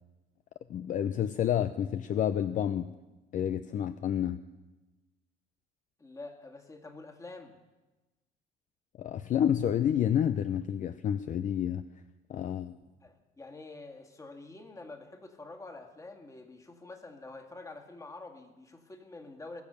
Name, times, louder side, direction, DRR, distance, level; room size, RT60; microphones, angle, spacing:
voice 1, 0.7-2.9 3.3-4.4 9.0-11.9 12.3-12.8, left 9 dB, 50° left, 11 dB, 0.5 m, -29 dB
voice 2, 6.0-7.6 13.0-19.6, left 3 dB, 20° left, 4 dB, 1.9 m, -47 dB
20.5 x 7.2 x 6.8 m, 1.1 s
cardioid pair, 110°, 17 cm